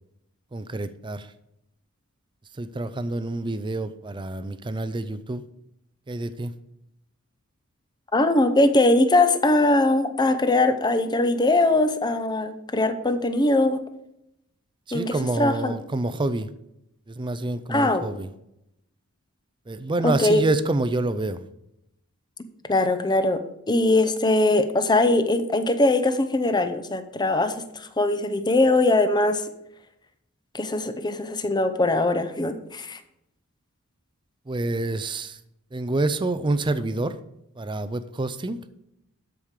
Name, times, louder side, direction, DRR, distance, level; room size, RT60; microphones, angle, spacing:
voice 1, 0.5-1.3 2.5-5.4 6.1-6.5 14.9-16.5 17.1-18.3 19.7-21.5 34.5-35.4 35.7-37.2 37.6-38.6, right 2 dB, 20° right, 13 dB, 0.5 m, -27 dB
voice 2, 8.1-13.8 14.9-15.7 17.7-18.1 20.0-20.4 22.7-23.4 23.7-29.4 30.5-33.0, left 2 dB, 20° left, 10 dB, 0.7 m, -21 dB
13.0 x 5.2 x 4.9 m, 0.82 s
head